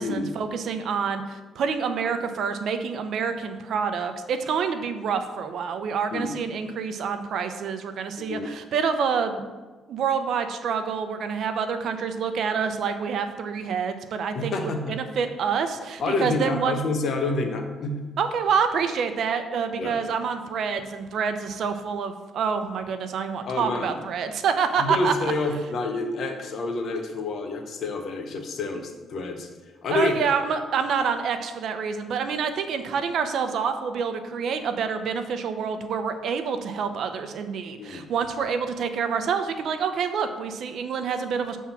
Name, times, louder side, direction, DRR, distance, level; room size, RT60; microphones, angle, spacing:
voice 1, 0.0-9.4 9.9-16.7 18.2-25.3 29.9-41.6, right 6 dB, 70° right, 8 dB, 0.6 m, -27 dB
voice 2, 8.2-8.5 14.3-15.0 16.0-18.1 19.8-20.0 23.5-24.0 24.8-29.5 29.8-30.1 37.8-38.0, left 3 dB, 60° left, 5 dB, 1.0 m, -28 dB
7.1 x 3.6 x 5.8 m, 1.3 s
cardioid pair, 90°, 0 cm